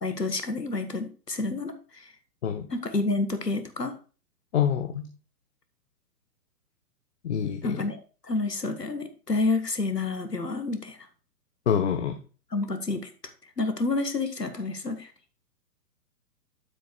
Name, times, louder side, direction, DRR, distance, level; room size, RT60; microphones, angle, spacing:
voice 1, 0.0-1.7 2.7-3.9 7.6-8.0 8.3-11.0 12.5-13.1 13.6-15.1, left 3 dB, 90° left, 9 dB, 1.4 m, -29 dB
voice 2, 4.5-5.1 7.2-7.9 11.7-12.2, left 8 dB, 45° left, 7 dB, 0.8 m, -26 dB
9.7 x 7.7 x 2.4 m, 0.36 s
figure-of-eight pair, 120°, 48 cm